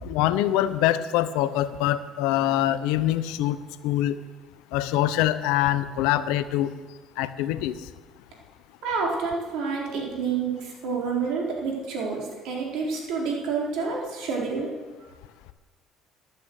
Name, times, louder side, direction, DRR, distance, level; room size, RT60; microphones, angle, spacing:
voice 1, 0.0-4.2 4.7-6.7 7.2-7.9, left 13 dB, 80° left, 14 dB, 0.7 m, -24 dB
voice 2, 8.8-14.7, right 5 dB, 70° right, -1 dB, 4.2 m, -28 dB
12.5 x 9.2 x 7.9 m, 1.3 s
hypercardioid pair, 65°, 0 cm